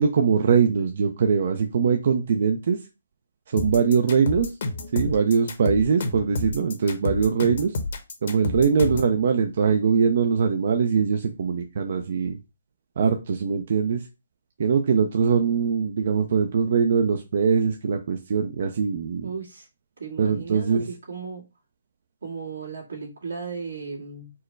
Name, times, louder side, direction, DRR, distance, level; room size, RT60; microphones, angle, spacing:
voice 1, 0.0-2.8 3.5-4.5 4.9-7.7 8.2-12.4 13.0-14.0 14.6-19.3 20.2-20.9, right 6 dB, 50° right, 5 dB, 0.5 m, -22 dB
sound 1, 3.6-9.1, left 2 dB, 55° left, 1.0 m, -29 dB
voice 2, 19.2-19.7 20.0-21.4 22.2-24.3, right 5 dB, 80° right, -1 dB, 1.9 m, -35 dB
4.5 x 2.2 x 4.5 m, 0.28 s
hypercardioid pair, 160°, 0 cm